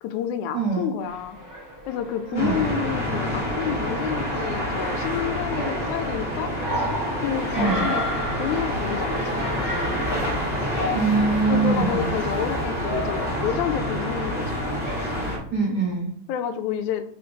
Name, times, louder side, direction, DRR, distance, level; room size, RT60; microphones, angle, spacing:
voice 1, 0.0-1.4 1.9-6.5 7.2-8.0 8.4-10.0 11.5-14.7 16.3-17.1, left 9 dB, 80° left, 9 dB, 1.9 m, -29 dB
voice 2, 0.5-0.9 2.3-2.7 7.5-7.9 10.9-12.1 15.5-16.1, right 4 dB, 75° right, -2 dB, 0.9 m, -23 dB
sound 1, 1.0-15.4, equal, 15° right, 0.6 m, -34 dB
sound 2, 2.3-15.4, equal, 40° left, 0.8 m, -28 dB
5.2 x 3.9 x 5.1 m, 0.63 s
omnidirectional pair, 3.5 m